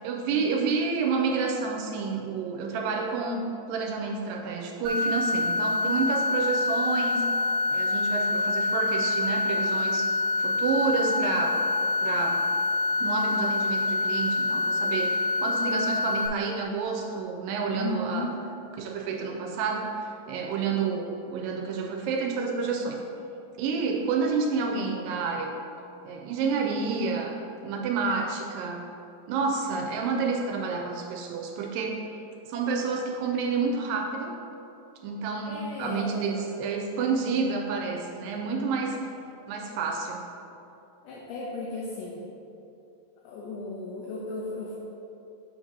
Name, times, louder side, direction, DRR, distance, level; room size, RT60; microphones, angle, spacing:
voice 1, 0.0-7.2 7.7-10.1 10.4-11.6 12.0-12.4 13.0-18.3 18.8-19.9 20.3-23.0 23.6-25.5 26.0-27.4 27.6-28.8 29.3-32.0 32.5-34.3 35.0-39.0 39.5-40.3, right 5 dB, 85° right, 2 dB, 2.2 m, -29 dB
sound 1, 4.8-16.3, left 3 dB, 65° right, 1.7 m, -26 dB
voice 2, 17.8-18.4 35.5-36.7 41.0-42.2 43.2-44.8, left 2 dB, 80° left, -4 dB, 2.3 m, -35 dB
7.8 x 2.8 x 6.0 m, 2.8 s
omnidirectional pair, 4.0 m